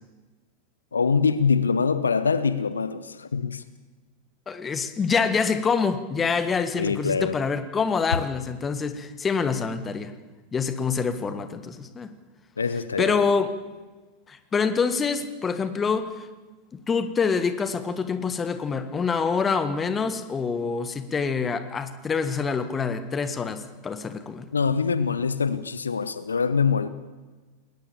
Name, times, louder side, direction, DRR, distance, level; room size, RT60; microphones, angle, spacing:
voice 1, 0.9-3.6 6.8-7.4 12.6-13.3 24.5-26.9, left 5 dB, 75° left, 14 dB, 0.8 m, -24 dB
voice 2, 4.5-10.1 10.5-12.1 13.0-13.5 14.3-16.3 16.7-24.5, left 5 dB, 20° left, 12 dB, 1.5 m, -26 dB
20.5 x 19.0 x 7.1 m, 1.3 s
figure-of-eight pair, 90°, 0 cm